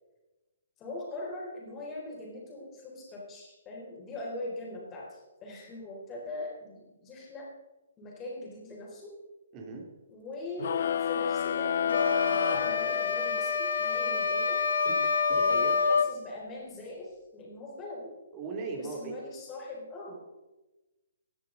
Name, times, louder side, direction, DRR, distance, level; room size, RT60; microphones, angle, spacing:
voice 1, 0.8-7.5 8.0-9.2 10.1-14.6 15.3-18.2 18.8-20.2, left 2 dB, 15° left, -2 dB, 4.1 m, -41 dB
voice 2, 9.5-9.8 14.8-15.8 18.3-19.1, right 4 dB, 25° right, 1 dB, 3.0 m, -39 dB
sound 1, 10.6-13.6, left 9 dB, 55° left, 0.4 m, -30 dB
sound 2, 11.9-16.1, left 5 dB, 75° left, 1.5 m, -27 dB
17.0 x 10.5 x 4.0 m, 1.1 s
hypercardioid pair, 155°, 0 cm